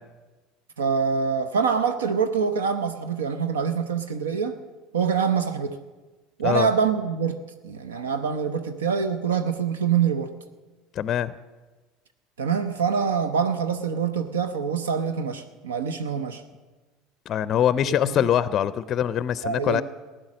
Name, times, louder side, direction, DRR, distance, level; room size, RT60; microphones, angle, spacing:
voice 1, 0.8-4.6 4.9-5.7 6.4-10.3 12.4-16.4 17.8-18.2 19.4-19.8, right 6 dB, 80° right, 9 dB, 0.7 m, -25 dB
voice 2, 11.0-11.3 17.3-19.8, left 10 dB, 45° left, 16 dB, 0.4 m, -23 dB
15.5 x 10.0 x 6.2 m, 1.3 s
hypercardioid pair, 75°, 0 cm